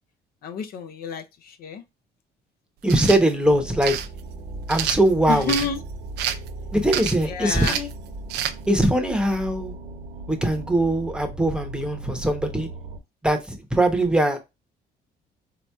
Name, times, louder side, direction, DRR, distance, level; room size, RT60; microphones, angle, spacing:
voice 1, 0.4-1.8 5.3-5.8 7.3-7.7, left 5 dB, 65° left, 0.5 m, -29 dB
voice 2, 2.8-4.1 4.7-5.7 6.7-7.9 8.7-9.7 10.3-12.7 13.2-14.4, right 1 dB, 5° right, 0.8 m, -21 dB
sound 1, 2.8-3.2 3.8-4.1 4.7-5.7 6.2-6.5 6.9-7.3 7.6-7.9 8.3-8.5, right 11 dB, 80° right, 0.4 m, -27 dB
sound 2, 3.4-13.0, right 2 dB, 50° right, 1.0 m, -37 dB
4.1 x 2.8 x 2.2 m
cardioid pair, 110°, 17 cm